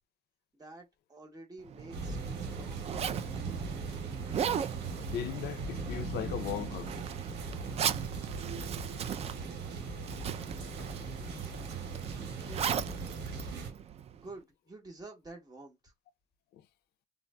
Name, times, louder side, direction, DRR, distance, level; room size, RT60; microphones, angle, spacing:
voice 1, 0.6-2.8 12.4-12.9 14.1-15.9, right 2 dB, 25° right, 1.5 m, -50 dB
Zipper (clothing), 1.6-14.3, right 8 dB, 40° right, 0.4 m, -38 dB
sound 1, 1.9-13.7, right 3 dB, 85° right, 1.4 m, -40 dB
voice 2, 5.1-6.9 9.4-9.5 16.5-16.6, left 10 dB, 70° left, 0.5 m, -37 dB
3.8 x 2.6 x 2.2 m
cardioid pair, 110°, 17 cm